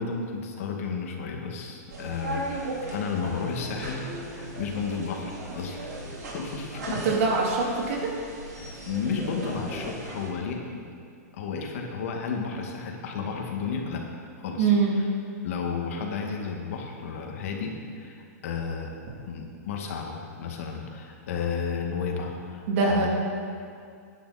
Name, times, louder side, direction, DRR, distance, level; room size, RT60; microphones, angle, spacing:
voice 1, 0.0-4.0 4.3-5.8 6.3-7.0 8.9-10.9 11.4-14.0 14.4-15.1 15.4-18.9 19.2-23.1, left 5 dB, 55° left, 1 dB, 2.2 m, -32 dB
sound 1, 1.9-10.3, right 2 dB, 80° right, 3.4 m, -37 dB
voice 2, 7.0-8.1 14.6-15.0 22.7-23.1, right 4 dB, 50° right, -2 dB, 3.1 m, -23 dB
17.5 x 10.5 x 4.4 m, 2.3 s
hypercardioid pair, 155°, 9 cm